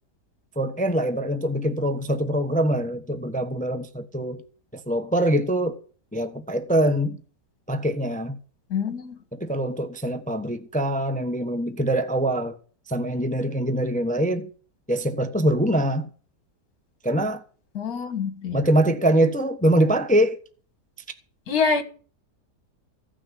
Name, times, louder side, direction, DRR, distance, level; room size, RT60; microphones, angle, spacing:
voice 1, 0.6-4.4 4.7-5.8 6.1-7.2 7.7-8.4 9.3-12.6 12.9-14.5 14.9-16.1 17.0-17.4 18.5-20.4, right 1 dB, 5° left, 0.9 m, -23 dB
voice 2, 8.7-9.2 17.7-18.6 21.5-21.8, left 5 dB, 60° left, 2.2 m, -25 dB
16.0 x 6.3 x 9.3 m
omnidirectional pair, 1.8 m